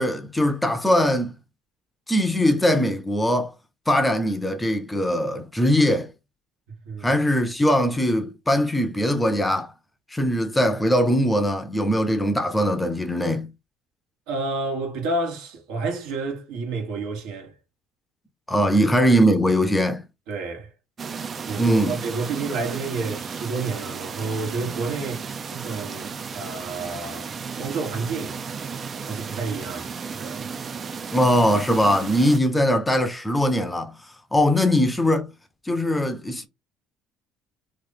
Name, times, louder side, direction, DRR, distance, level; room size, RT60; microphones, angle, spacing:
voice 1, 0.0-1.3 2.1-3.5 3.9-6.1 7.0-9.7 10.1-13.5 18.5-20.0 21.6-22.0 31.1-33.9 34.3-35.3 35.7-36.5, equal, 10° left, 0.6 m, -21 dB
voice 2, 6.7-7.1 14.3-17.6 18.7-18.8 20.3-20.7 21.5-25.3 25.5-28.4 29.0-30.5, right 3 dB, 80° right, 1.4 m, -30 dB
sound 1, 21.0-32.4, right 6 dB, 35° right, 0.4 m, -34 dB
3.1 x 2.5 x 3.9 m
cardioid pair, 110°, 0 cm